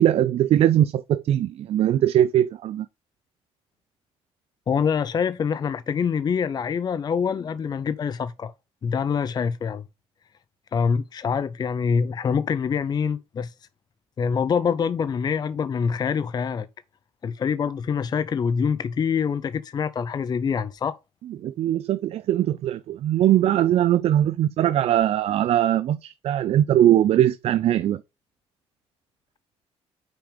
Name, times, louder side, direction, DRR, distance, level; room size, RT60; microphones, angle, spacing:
voice 1, 0.0-2.9 21.4-28.0, right 11 dB, 65° right, 0.4 m, -21 dB
voice 2, 4.7-8.5 8.8-9.8 10.7-13.5 14.2-16.7 17.2-21.0, left 6 dB, 40° left, 0.5 m, -25 dB
6.0 x 5.1 x 4.9 m
cardioid pair, 100°, 11 cm